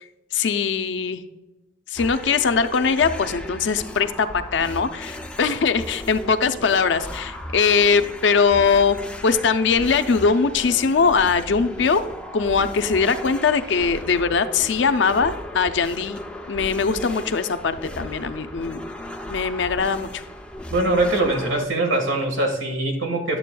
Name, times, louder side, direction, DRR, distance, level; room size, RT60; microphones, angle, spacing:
voice 1, 0.3-1.2 1.9-9.0 9.2-12.0 12.3-16.2 16.5-18.8 19.3-20.2, left 5 dB, 70° left, 10 dB, 0.5 m, -21 dB
sound 1, 2.0-21.7, left 1 dB, 5° left, 0.3 m, -36 dB
voice 2, 20.7-23.4, right 2 dB, 80° right, 3 dB, 1.5 m, -22 dB
11.0 x 7.5 x 2.2 m, 1.1 s
head